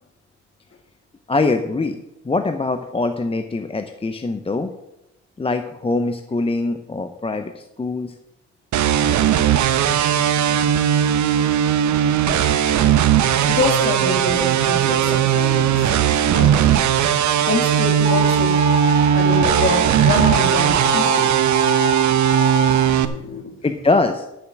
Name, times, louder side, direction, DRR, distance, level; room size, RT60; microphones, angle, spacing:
voice 1, 1.3-2.0 2.2-4.7 5.4-8.1 23.6-24.3, left 3 dB, 20° left, 8 dB, 0.7 m, -23 dB
sound 1, 8.7-23.1, right 10 dB, 70° right, 0.9 m, -18 dB
voice 2, 13.5-15.9 16.3-16.8 17.5-18.6 19.1-21.3 23.0-23.5, left 3 dB, 40° left, 4 dB, 2.4 m, -26 dB
sound 2, 18.1-22.8, right 2 dB, 20° right, 1.9 m, -23 dB
12.0 x 7.0 x 6.0 m, 0.88 s
cardioid pair, 90°, 30 cm